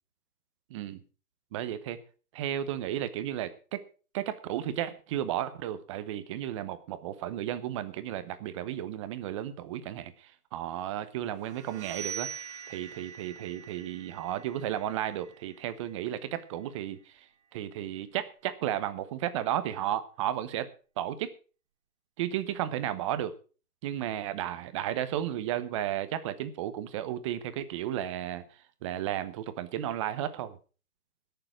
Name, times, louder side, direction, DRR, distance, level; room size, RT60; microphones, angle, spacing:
voice 1, 0.7-1.0 1.5-2.0 2.3-3.9 4.1-12.3 12.7-17.3 17.5-20.7 21.0-21.3 22.2-23.3 23.8-28.5 28.8-30.6, right 11 dB, 20° right, 12 dB, 0.8 m, -33 dB
sound 1, 11.4-17.1, right 7 dB, 45° right, 2.5 m, -44 dB
17.0 x 6.9 x 6.0 m, 0.37 s
hypercardioid pair, 145°, 46 cm